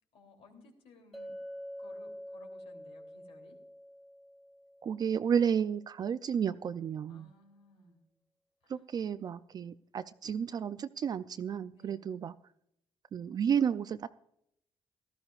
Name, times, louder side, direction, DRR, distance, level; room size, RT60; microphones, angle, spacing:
voice 1, 0.1-1.3 1.8-3.6 7.1-8.0 8.6-8.7 11.7-12.1, left 3 dB, 70° left, 3 dB, 3.1 m, -59 dB
Chink clink, 1.1-5.3, equal, 5° left, 2.1 m, -46 dB
voice 2, 4.8-7.3 8.7-12.3 13.1-14.1, right 7 dB, 40° right, 13 dB, 0.4 m, -32 dB
18.0 x 13.0 x 2.4 m, 0.76 s
cardioid pair, 130°, 10 cm